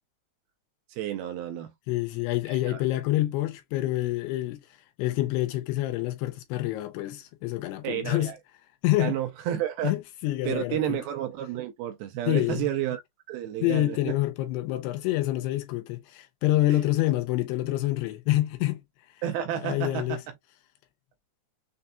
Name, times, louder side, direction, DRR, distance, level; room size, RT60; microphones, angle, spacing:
voice 1, 0.9-1.7 2.5-2.8 7.8-8.4 9.0-10.0 10.4-13.0 13.3-14.2 19.2-20.2, right 11 dB, 75° right, 2.5 m, -31 dB
voice 2, 1.9-4.6 5.0-8.3 8.8-9.2 9.8-11.0 12.3-12.7 13.6-18.8 19.6-20.2, left 16 dB, 85° left, 2.7 m, -27 dB
6.6 x 2.7 x 2.2 m
omnidirectional pair, 4.6 m